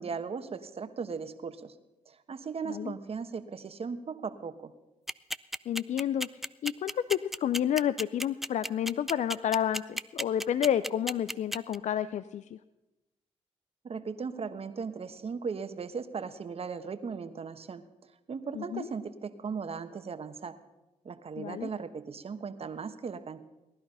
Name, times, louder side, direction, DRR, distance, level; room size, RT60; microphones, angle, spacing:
voice 1, 0.0-1.7 2.1-4.7 13.8-17.8 18.3-20.6 21.0-23.4, right 5 dB, 50° right, 10 dB, 1.2 m, -37 dB
sound 1, 5.1-11.8, equal, ahead, 0.4 m, -33 dB
voice 2, 5.7-6.3 6.6-12.6 18.6-18.9 21.4-21.7, left 10 dB, 65° left, 15 dB, 0.4 m, -30 dB
18.5 x 11.0 x 5.6 m, 1.0 s
cardioid pair, 65°, 13 cm